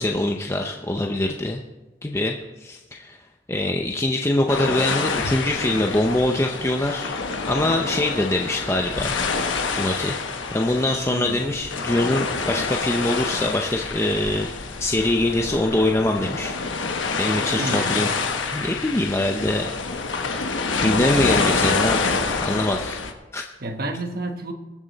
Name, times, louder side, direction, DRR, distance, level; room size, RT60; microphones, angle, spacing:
voice 1, 0.0-1.6 2.0-2.3 2.6-3.2 3.5-7.2 7.5-9.2 9.7-10.2 10.5-14.5 14.8-18.1 18.5-19.7 20.8-23.0 23.3-23.4, left 1 dB, 15° left, 2 dB, 0.6 m, -23 dB
sound 1, 4.5-23.1, left 4 dB, 90° left, 1.2 m, -27 dB
voice 2, 11.1-11.5 17.5-18.0 23.6-24.5, right 2 dB, 55° right, 5 dB, 1.2 m, -30 dB
21.0 x 7.3 x 4.1 m, 1.1 s
head